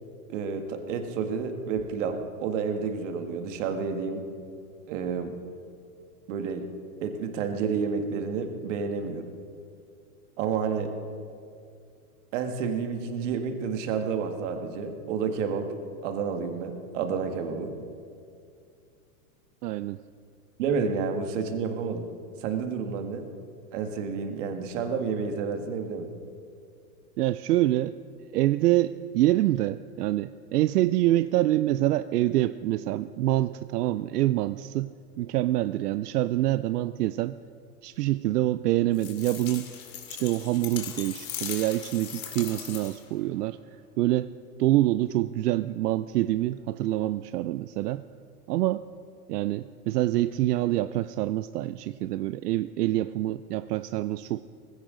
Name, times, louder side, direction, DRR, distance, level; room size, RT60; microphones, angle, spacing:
voice 1, 0.3-4.2 4.9-5.4 6.3-6.6 7.0-9.2 10.4-10.9 12.3-15.7 16.0-17.7 20.6-22.1 22.4-23.3 23.7-26.1, right 5 dB, 55° right, 5 dB, 1.8 m, -30 dB
voice 2, 19.6-20.0 27.2-27.9 28.3-34.9 35.2-37.4 37.8-39.7 40.1-43.6 44.0-44.3 44.6-48.0 48.5-48.8 49.3-54.4, right 15 dB, 85° right, 14 dB, 0.6 m, -26 dB
sound 1, 38.9-43.1, left 9 dB, 65° left, 2.6 m, -39 dB
18.5 x 16.0 x 3.9 m, 2.4 s
supercardioid pair, 150°, 46 cm